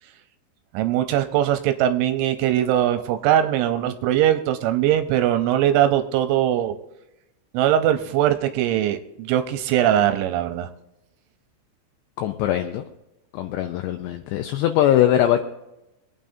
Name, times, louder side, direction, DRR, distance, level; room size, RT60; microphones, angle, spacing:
voice 1, 0.7-6.7 7.5-10.7, right 11 dB, 80° right, 9 dB, 2.9 m, -21 dB
voice 2, 12.2-12.8 13.3-15.4, left 11 dB, 90° left, 7 dB, 2.5 m, -21 dB
25.5 x 8.9 x 2.6 m, 0.93 s
omnidirectional pair, 5.7 m